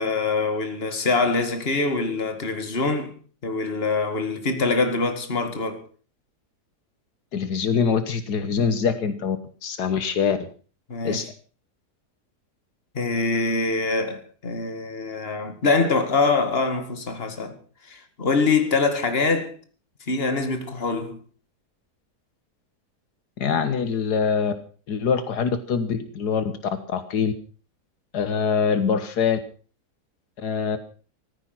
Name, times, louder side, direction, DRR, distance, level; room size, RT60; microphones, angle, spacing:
voice 1, 0.0-3.2 3.4-5.8 10.9-11.3 12.9-17.6 17.8-19.5 20.1-21.2, left 3 dB, 35° left, 2.2 m, -24 dB
voice 2, 7.3-9.4 9.6-10.4 11.0-11.3 23.4-24.5 24.9-26.4 26.9-27.3 28.1-29.4 30.4-30.8, left 6 dB, 80° left, 1.7 m, -24 dB
14.5 x 14.5 x 5.8 m
omnidirectional pair, 1.7 m